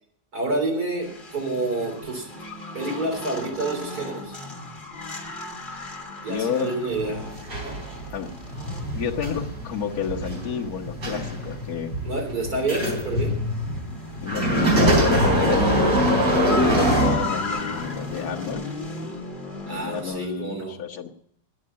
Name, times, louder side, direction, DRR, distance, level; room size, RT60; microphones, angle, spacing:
voice 1, 0.3-2.3 2.7-4.4 6.2-7.2 7.5-7.8 12.0-13.3 19.7-20.8, right 2 dB, 55° right, 0 dB, 4.1 m, -28 dB
sound 1, 1.0-20.2, left 3 dB, 30° left, 2.2 m, -37 dB
voice 2, 6.3-6.7 8.1-8.3 8.9-11.9 14.2-18.6 19.0-19.1 19.7-21.1, left 7 dB, 60° left, -2 dB, 1.7 m, -30 dB
sound 2, 6.9-17.7 18.4-18.5, equal, 75° right, 4.9 m, -23 dB
10.0 x 9.8 x 8.6 m, 0.68 s
omnidirectional pair, 1.9 m